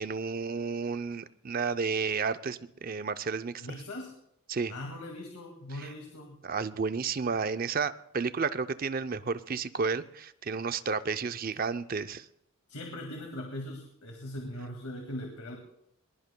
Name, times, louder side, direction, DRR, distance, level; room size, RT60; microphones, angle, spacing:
voice 1, 0.0-3.5 4.5-4.7 6.4-12.2, right 5 dB, 40° right, 12 dB, 0.5 m, -32 dB
voice 2, 3.6-4.1 4.7-6.4 12.7-15.6, left 1 dB, 90° left, 1 dB, 2.1 m, -40 dB
21.5 x 20.5 x 2.3 m, 0.73 s
head